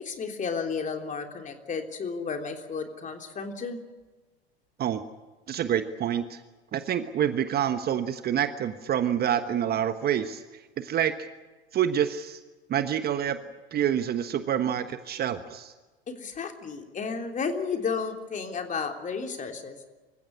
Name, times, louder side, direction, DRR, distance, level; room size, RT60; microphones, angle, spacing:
voice 1, 0.0-3.8 16.1-19.8, left 5 dB, 25° left, 4 dB, 3.4 m, -32 dB
voice 2, 5.5-6.4 6.7-10.4 10.8-11.1 11.7-12.4 12.7-13.4 13.7-15.7, right 9 dB, 30° right, 10 dB, 1.3 m, -27 dB
26.0 x 15.5 x 9.9 m, 1.2 s
figure-of-eight pair, 90°, 31 cm